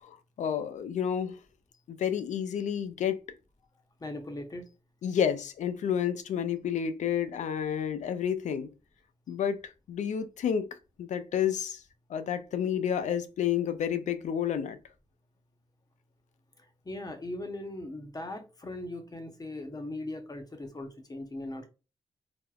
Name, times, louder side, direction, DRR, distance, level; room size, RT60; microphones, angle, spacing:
voice 1, 0.0-1.4 1.9-3.2 5.0-8.7 9.3-10.7 11.0-11.8 12.1-14.8, left 8 dB, 70° left, 0.4 m, -30 dB
voice 2, 4.0-4.6 16.8-21.7, left 1 dB, 30° left, 0.8 m, -39 dB
3.4 x 2.1 x 2.3 m
supercardioid pair, 50°, 13 cm